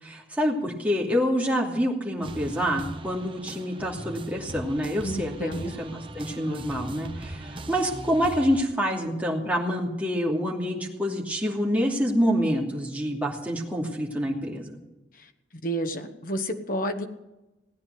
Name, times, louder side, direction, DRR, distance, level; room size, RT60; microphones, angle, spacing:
voice 1, 0.0-14.8, equal, 10° right, -2 dB, 2.7 m, -27 dB
sound 1, 2.2-8.6, right 2 dB, 30° right, 1.0 m, -39 dB
voice 2, 5.0-5.7 15.2-15.3 15.6-17.1, right 1 dB, 50° left, 6 dB, 1.4 m, -30 dB
17.5 x 9.8 x 7.7 m, 0.99 s
head